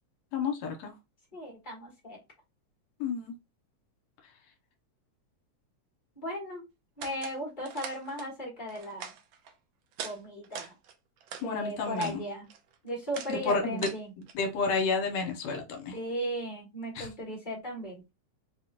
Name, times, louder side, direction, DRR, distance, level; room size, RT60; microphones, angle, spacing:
voice 1, 0.3-0.9 3.0-3.4 11.4-12.3 13.3-13.9 14.2-16.0 17.0-17.1, left 4 dB, 70° left, 2.0 m, -31 dB
voice 2, 1.3-2.2 6.2-6.6 7.0-9.1 10.0-10.7 11.4-12.5 12.8-14.1 15.9-18.1, equal, 40° left, 0.6 m, -36 dB
sound 1, 7.0-7.4 7.6-8.3 8.7-9.5 9.9-10.2 10.4-11.5 11.9-12.2 12.5-14.3, right 8 dB, 75° right, 1.5 m, -42 dB
4.8 x 2.4 x 2.9 m
omnidirectional pair, 3.5 m